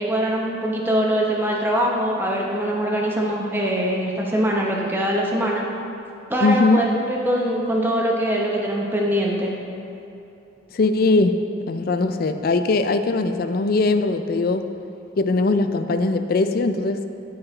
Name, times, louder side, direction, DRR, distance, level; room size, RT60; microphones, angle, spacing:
voice 1, 0.0-5.6 6.3-9.5, equal, 10° right, -2 dB, 0.8 m, -23 dB
voice 2, 6.4-6.9 10.7-14.7 15.2-17.0, left 3 dB, 45° left, 9 dB, 0.4 m, -20 dB
13.5 x 4.6 x 3.3 m, 2.8 s
head